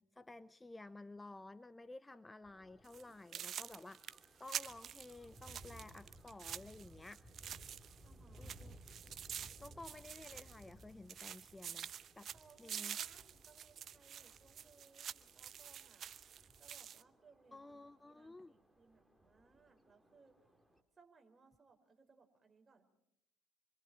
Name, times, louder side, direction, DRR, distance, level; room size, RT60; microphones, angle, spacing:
voice 1, 0.0-7.2 8.4-8.7 9.3-12.3 12.6-13.0 17.5-18.5, left 2 dB, 15° left, 15 dB, 0.8 m, -54 dB
sound 1, 2.4-20.8, right 1 dB, ahead, 3.9 m, -61 dB
sound 2, 2.8-3.0 3.3-8.1 8.3-10.8 11.1-17.0, right 9 dB, 50° right, 0.8 m, -48 dB
voice 2, 8.0-8.6 12.3-16.1 16.6-20.5 20.9-22.9, right 4 dB, 25° right, 5 dB, 5.3 m, -67 dB
27.0 x 25.0 x 4.5 m, 0.83 s
hypercardioid pair, 60°, 0 cm